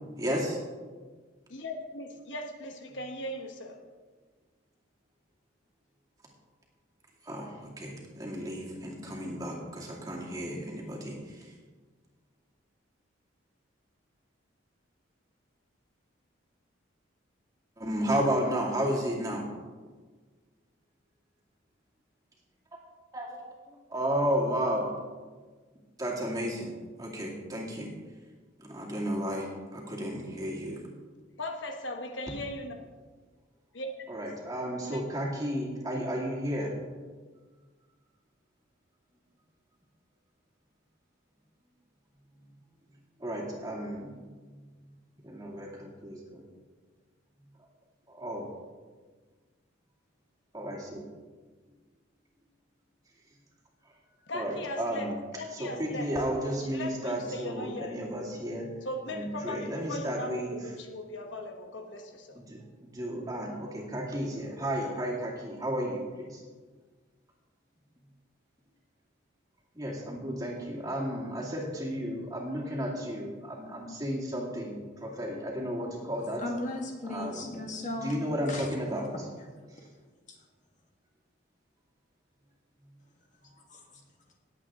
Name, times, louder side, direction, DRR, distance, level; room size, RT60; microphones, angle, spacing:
voice 1, 0.2-0.6 7.2-11.5 17.8-19.5 23.1-23.4 23.7-24.9 26.0-27.9 28.6-30.9 34.1-36.8 43.2-44.1 45.2-46.4 47.6-47.7 48.1-48.5 50.5-51.1 53.8-53.9 54.3-55.2 55.5-58.7 59.1-60.7 62.3-66.4 69.7-76.4 77.1-79.1 79.7-79.8, equal, 20° right, -3 dB, 2.4 m, -33 dB
voice 2, 1.5-3.8 31.4-32.9 33.7-33.9 34.9-35.0 54.3-55.1 55.3-56.1 56.6-58.0 58.8-62.4, left 1 dB, 65° left, 4 dB, 1.1 m, -38 dB
voice 3, 76.4-78.2 78.5-78.7 79.1-79.2 80.3-80.4 83.4-83.9, left 2 dB, 40° left, 1 dB, 1.8 m, -37 dB
19.0 x 8.3 x 3.7 m, 1.4 s
head